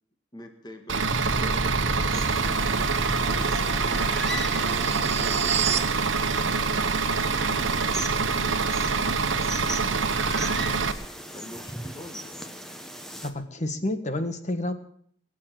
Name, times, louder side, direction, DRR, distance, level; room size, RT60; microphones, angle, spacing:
voice 1, 0.3-2.6 3.1-6.2 6.7-6.9 7.2-10.9 11.3-12.5, equal, 20° left, 4 dB, 1.8 m, -45 dB
Bus / Idling, 0.9-10.9, right 4 dB, 80° right, 1.2 m, -25 dB
sound 1, 1.1-5.9, right 4 dB, 35° right, 1.0 m, -31 dB
sound 2, 2.1-13.3, equal, ahead, 1.2 m, -38 dB
voice 2, 13.2-14.7, left 1 dB, 35° left, 9 dB, 1.4 m, -29 dB
22.5 x 7.7 x 7.7 m, 0.62 s
head